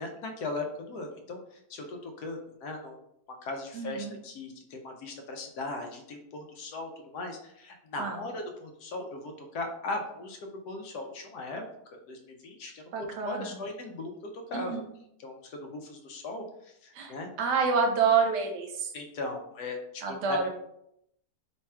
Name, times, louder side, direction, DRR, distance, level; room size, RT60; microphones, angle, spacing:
voice 1, 0.0-3.0 3.4-10.4 10.7-11.6 11.9-14.8 15.2-17.3 18.9-20.5, left 2 dB, 70° left, 3 dB, 1.1 m, -38 dB
voice 2, 3.7-4.2 8.0-8.3 12.9-13.6 14.5-14.8 16.9-18.9 20.0-20.5, right 5 dB, 80° right, 3 dB, 1.2 m, -28 dB
3.2 x 2.3 x 4.2 m, 0.76 s
omnidirectional pair, 1.8 m